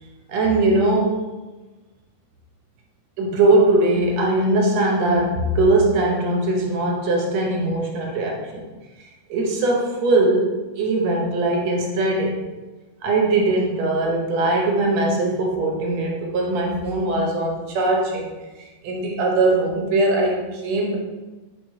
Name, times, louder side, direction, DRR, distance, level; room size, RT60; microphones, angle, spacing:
voice 1, 0.3-1.2 3.2-8.6 9.3-12.5 13.0-18.3 18.8-21.0, right 2 dB, 70° right, 0 dB, 2.0 m, -20 dB
4.8 x 4.7 x 4.7 m, 1.2 s
omnidirectional pair, 3.4 m